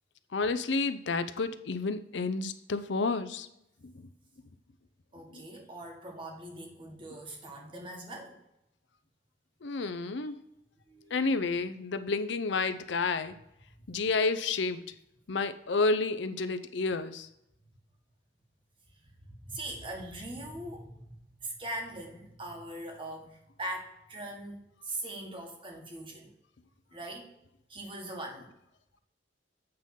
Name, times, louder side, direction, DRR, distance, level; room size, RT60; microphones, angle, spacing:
voice 1, 0.3-3.5 5.3-5.4 9.6-10.3 11.1-13.3 13.9-14.8 15.3-17.3, left 3 dB, 70° left, 11 dB, 0.6 m, -30 dB
voice 2, 5.1-8.4 10.2-10.3 10.9-11.5 18.9-21.1 21.4-26.3 26.9-27.3 27.7-28.5, right 1 dB, 25° right, 1 dB, 1.6 m, -41 dB
8.7 x 3.7 x 5.6 m, 0.82 s
head